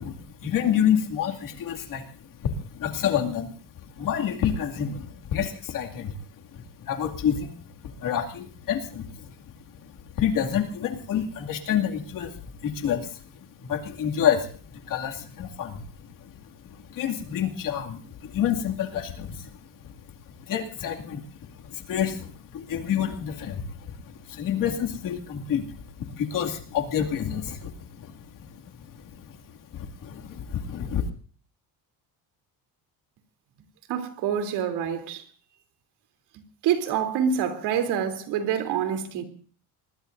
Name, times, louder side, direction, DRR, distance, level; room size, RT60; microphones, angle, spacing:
voice 1, 0.0-2.1 2.4-3.5 4.0-6.1 6.5-7.6 8.0-9.3 9.8-13.2 13.6-14.5 14.8-16.3 16.9-19.5 20.5-21.2 21.6-23.7 23.9-25.8 26.1-28.2 28.5-28.6 29.0-29.3 29.7-31.0, left 9 dB, 55° left, 2.4 m, -28 dB
voice 2, 33.9-35.2 36.6-39.2, right 8 dB, 75° right, 3.3 m, -26 dB
25.0 x 20.5 x 2.6 m
cardioid pair, 150°, 40 cm